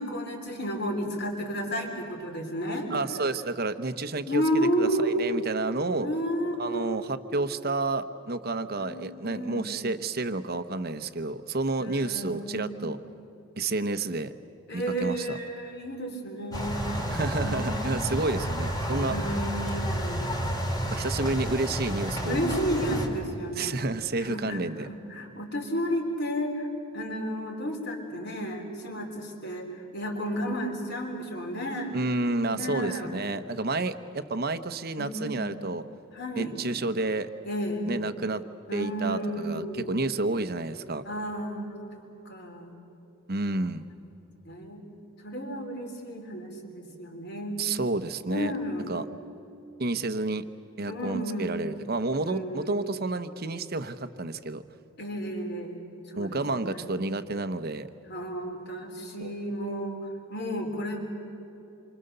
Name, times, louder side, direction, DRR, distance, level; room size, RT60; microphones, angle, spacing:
voice 1, 0.0-2.9 4.3-5.4 6.0-6.9 8.8-9.7 11.8-12.9 14.7-18.2 18.9-20.4 22.2-23.7 24.2-26.7 26.9-31.9 32.5-33.1 35.0-35.5 36.1-36.5 37.4-37.9 38.7-40.1 41.0-42.7 44.4-44.8 45.2-47.6 48.3-48.9 50.9-51.6 52.2-52.8 55.0-55.8 56.1-56.9 58.1-61.0, equal, 50° left, 2 dB, 3.8 m, -32 dB
voice 2, 2.9-6.1 6.6-13.0 13.6-14.3 14.7-15.4 17.1-19.1 20.8-22.6 23.5-24.9 31.9-35.8 36.4-37.3 37.9-38.4 38.7-41.0 43.3-43.8 47.6-48.5 48.9-49.0 49.8-50.5 50.8-54.6 56.2-57.9 59.2-59.3, right 2 dB, 45° right, 11 dB, 0.9 m, -30 dB
sound 1, 16.5-23.1, equal, 20° left, 2.8 m, -30 dB
27.5 x 24.5 x 6.8 m, 2.9 s
head